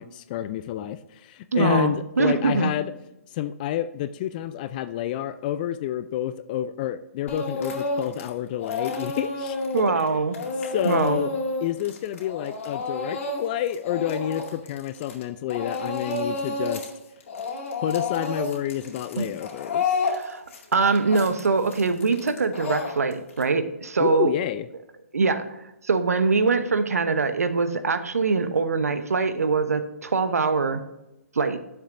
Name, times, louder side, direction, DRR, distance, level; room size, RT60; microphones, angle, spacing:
voice 1, 0.0-2.9 3.3-9.6 10.0-10.2 10.7-11.3 11.6-16.9 17.8-20.0 24.0-24.7, left 12 dB, 35° left, 13 dB, 0.3 m, -29 dB
voice 2, 1.5-2.7 9.7-10.3 10.8-11.2 19.2-19.3 20.1-20.4 20.7-24.3 25.1-25.5 25.8-30.8 31.3-31.6, right 4 dB, 85° right, 10 dB, 0.8 m, -23 dB
Speech / Crying sobbing, 7.3-8.3 8.6-15.2 15.5-16.9 17.2-23.4, left 3 dB, 60° left, 2.3 m, -30 dB
9.6 x 7.1 x 2.6 m, 0.94 s
hypercardioid pair, 140°, 8 cm